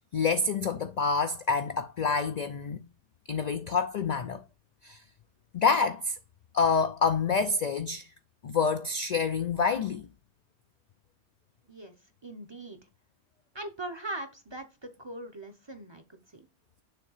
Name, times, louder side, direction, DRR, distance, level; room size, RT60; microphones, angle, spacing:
voice 1, 0.1-2.9 3.3-4.4 4.8-5.0 5.5-6.2 6.5-8.1 8.4-10.1, left 5 dB, 60° left, 0.4 m, -27 dB
voice 2, 11.7-12.8 13.5-16.5, right 1 dB, 30° right, 0.6 m, -41 dB
6.8 x 2.7 x 5.5 m
omnidirectional pair, 1.2 m